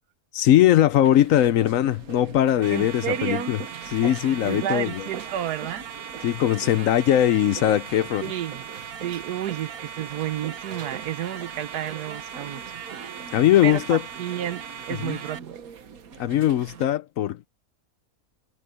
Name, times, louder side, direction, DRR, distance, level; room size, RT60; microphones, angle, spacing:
voice 1, 0.3-3.6 3.9-5.0 6.2-8.2 13.3-14.0 15.0-15.2 16.2-17.5, left 12 dB, 65° left, 0.9 m, -20 dB
sound 1, 1.0-16.8, right 7 dB, 65° right, 1.6 m, -43 dB
sound 2, 2.6-15.4, right 7 dB, 45° right, 1.0 m, -39 dB
voice 2, 2.7-3.5 4.4-5.9 8.2-8.7 9.0-12.8 13.6-15.6, right 11 dB, 85° right, 1.4 m, -31 dB
omnidirectional pair, 1.6 m